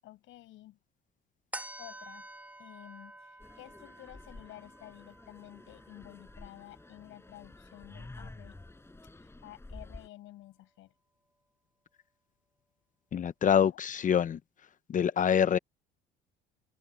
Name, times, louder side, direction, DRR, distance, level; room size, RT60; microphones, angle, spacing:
voice 1, 0.0-0.8 1.8-2.3 2.6-8.6 9.1-10.9 13.4-13.8, left 15 dB, 70° left, 7.0 m, -52 dB
sound 1, 1.5-8.3 8.7-8.8, right 1 dB, 5° right, 2.5 m, -49 dB
sound 2, 3.4-10.1, left 2 dB, 10° left, 5.3 m, -50 dB
voice 2, 13.1-14.4 14.9-15.6, left 8 dB, 40° left, 0.8 m, -25 dB
open air
cardioid pair, 105°, 21 cm